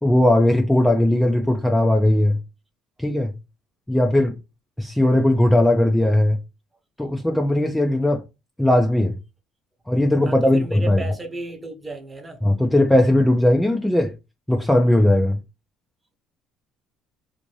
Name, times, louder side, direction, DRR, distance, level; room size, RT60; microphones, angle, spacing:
voice 1, 0.0-2.4 3.0-3.3 3.9-4.3 4.8-6.4 7.0-8.2 8.6-9.2 9.9-11.0 12.4-14.1 14.5-15.4, left 1 dB, 5° left, 0.5 m, -18 dB
voice 2, 10.2-12.4, right 2 dB, 20° right, 0.9 m, -34 dB
2.6 x 2.5 x 3.1 m
supercardioid pair, 90°, 0 cm